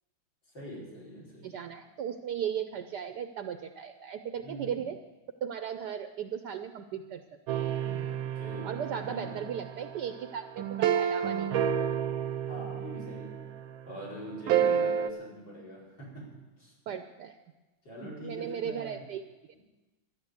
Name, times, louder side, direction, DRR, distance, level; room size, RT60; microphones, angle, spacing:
voice 1, 0.5-1.6 4.4-4.9 7.9-9.5 12.5-13.3 13.9-16.3 16.6-16.7 17.8-19.0, equal, 65° left, -5 dB, 6.0 m, -44 dB
voice 2, 1.4-5.0 5.4-7.2 7.8-8.1 8.6-11.5 14.5-14.9 16.9-17.4 18.0-19.5, right 8 dB, 70° right, 8 dB, 1.2 m, -37 dB
sound 1, 7.5-13.7 14.5-15.1, right 8 dB, 90° right, 1.6 m, -30 dB
13.0 x 10.0 x 8.1 m, 1.1 s
omnidirectional pair, 2.1 m